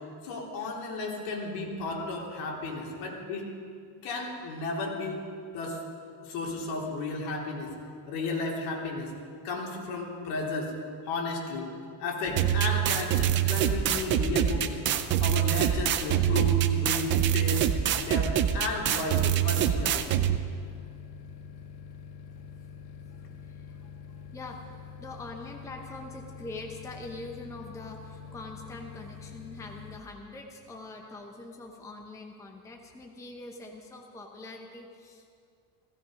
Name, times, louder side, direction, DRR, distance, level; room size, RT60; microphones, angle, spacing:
voice 1, 0.2-3.6 4.0-5.2 5.5-5.9 6.2-7.7 8.1-9.1 9.4-10.7 11.1-11.7 12.0-14.8 15.2-17.6 17.9-20.2, left 3 dB, 80° left, -2 dB, 3.7 m, -33 dB
sound 1, 12.2-30.0, left 6 dB, 50° left, 0.8 m, -46 dB
sound 2, 12.4-20.4, right 11 dB, 25° right, 0.3 m, -25 dB
voice 2, 23.1-35.2, left 2 dB, 5° left, 2 dB, 0.8 m, -44 dB
16.5 x 16.0 x 5.2 m, 2.2 s
cardioid pair, 175°, 48 cm